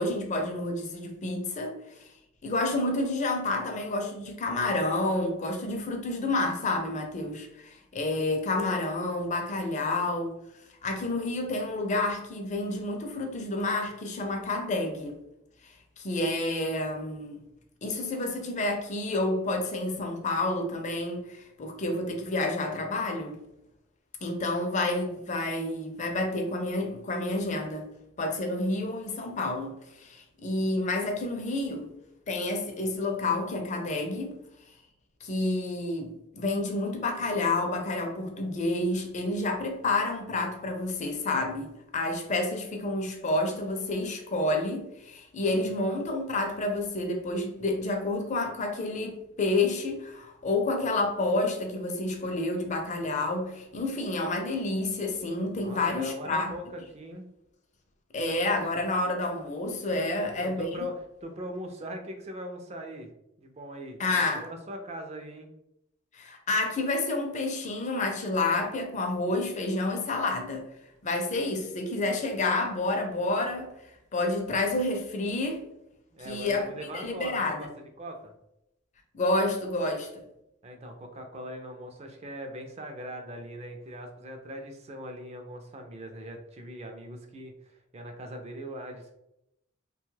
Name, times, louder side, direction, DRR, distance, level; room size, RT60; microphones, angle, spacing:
voice 1, 0.0-2.1 2.4-10.3 10.8-15.2 15.6-17.4 17.8-23.4 24.2-27.9 28.2-31.9 32.3-34.4 35.2-56.6 58.1-60.7 64.0-64.5 66.1-70.7 71.0-75.6 76.2-76.7 76.9-77.7 79.1-80.2, left 2 dB, 35° left, 0.5 m, -29 dB
voice 2, 55.6-57.3 60.1-60.9 61.2-63.1 63.4-65.5 76.1-77.7 78.0-78.3 80.6-89.2, equal, 30° right, 0.4 m, -40 dB
2.8 x 2.3 x 3.1 m
head